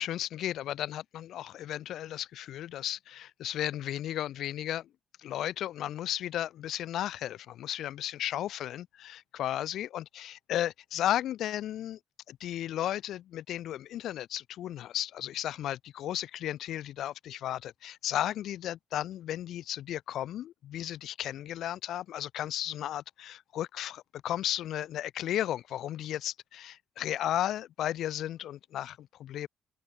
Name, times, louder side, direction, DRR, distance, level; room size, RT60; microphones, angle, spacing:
voice 1, 0.0-4.9 5.2-12.0 12.3-29.5, left 12 dB, 75° left, 2.0 m, -34 dB
cardioid pair, 120°, 0 cm